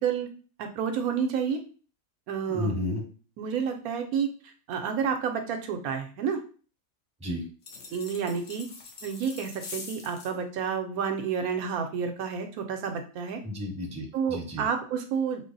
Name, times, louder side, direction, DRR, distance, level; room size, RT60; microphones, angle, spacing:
voice 1, 0.6-1.6 2.3-2.7 3.4-6.4 7.9-8.7 9.0-13.4 14.1-15.5, right 6 dB, 80° right, 5 dB, 1.0 m, -30 dB
voice 2, 2.5-3.0 7.2-7.4 13.4-14.7, left 1 dB, 5° right, -1 dB, 0.7 m, -32 dB
sound 1, 7.6-10.4, left 4 dB, 60° left, 1.0 m, -43 dB
3.8 x 2.0 x 3.9 m, 0.38 s
omnidirectional pair, 1.6 m